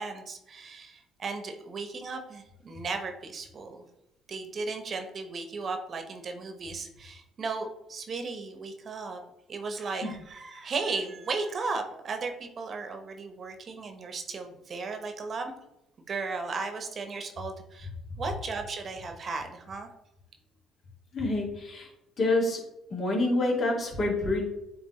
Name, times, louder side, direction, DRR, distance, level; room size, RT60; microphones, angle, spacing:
voice 1, 0.0-3.8 4.3-9.2 9.5-15.5 16.1-17.9 18.2-19.9, right 4 dB, 45° right, 5 dB, 1.0 m, -35 dB
voice 2, 21.1-21.9 22.2-22.6 22.9-24.4, left 2 dB, 50° left, -2 dB, 2.3 m, -27 dB
8.8 x 3.3 x 3.2 m, 0.90 s
hypercardioid pair, 60°, 0 cm